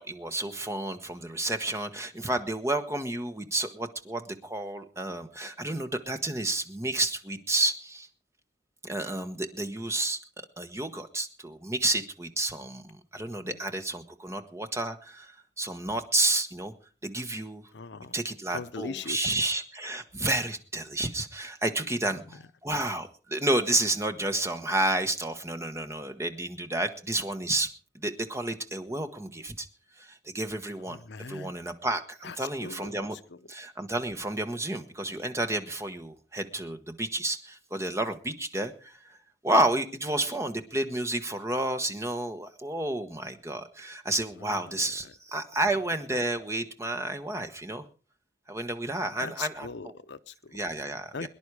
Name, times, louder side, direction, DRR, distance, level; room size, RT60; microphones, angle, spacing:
voice 1, 0.0-8.1 8.8-10.2 10.6-16.7 17.0-17.6 18.1-27.7 27.9-29.7 30.0-31.0 31.3-33.2 33.5-39.2 39.4-47.8 48.5-49.9 50.5-51.3, right 2 dB, 15° right, 1.2 m, -31 dB
voice 2, 13.2-13.6 17.7-18.2 18.5-19.4 30.9-31.5 32.2-32.4 32.6-33.4 44.4-44.9 49.2-50.6 51.1-51.3, left 4 dB, 70° left, 0.7 m, -40 dB
23.0 x 10.5 x 4.8 m
head